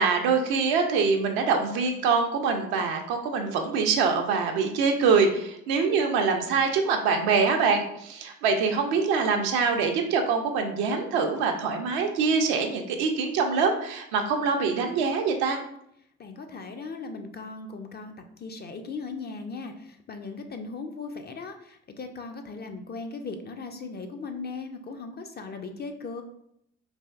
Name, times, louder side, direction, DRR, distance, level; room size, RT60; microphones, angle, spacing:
voice 1, 0.0-15.6, right 5 dB, 75° right, 4 dB, 0.6 m, -24 dB
voice 2, 16.2-26.2, left 4 dB, 30° left, 5 dB, 0.4 m, -38 dB
3.3 x 2.4 x 2.3 m, 0.74 s
hypercardioid pair, 45°, 38 cm